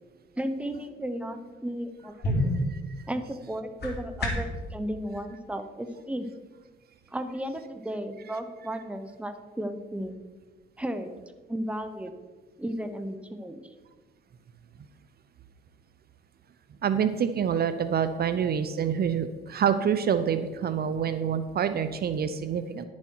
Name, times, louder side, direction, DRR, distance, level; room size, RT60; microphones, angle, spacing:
voice 1, 0.4-2.3 3.1-6.3 7.1-10.2 10.8-11.1 11.5-12.1 12.6-13.7, right 1 dB, 5° right, 8 dB, 0.9 m, -34 dB
sound 1, 1.7-4.6, left 1 dB, 55° left, 2.5 m, -30 dB
voice 2, 16.8-22.9, right 8 dB, 50° right, 11 dB, 0.6 m, -27 dB
11.0 x 7.3 x 4.6 m, 1.3 s
cardioid pair, 90°, 20 cm